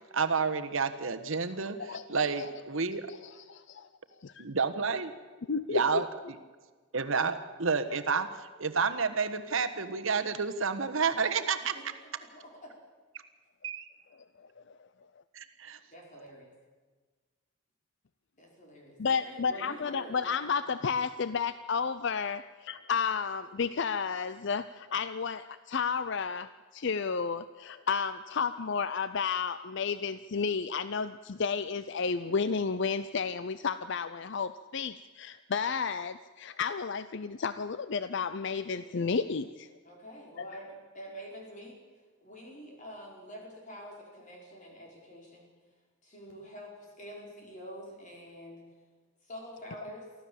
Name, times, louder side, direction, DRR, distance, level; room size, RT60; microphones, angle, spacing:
voice 1, 0.1-3.1 4.4-5.1 5.7-6.1 6.9-11.7 13.6-13.9 15.3-15.8, right 5 dB, 70° right, 9 dB, 1.3 m, -30 dB
voice 2, 3.5-3.9 4.2-4.4 5.5-6.0 19.0-39.7, left 5 dB, 55° left, 14 dB, 0.5 m, -32 dB
voice 3, 11.6-12.7 15.9-16.5 18.4-20.7 39.8-41.8 42.2-45.5 46.0-48.6 49.2-50.1, equal, 35° left, -1 dB, 5.3 m, -47 dB
24.0 x 15.0 x 7.3 m, 1.4 s
head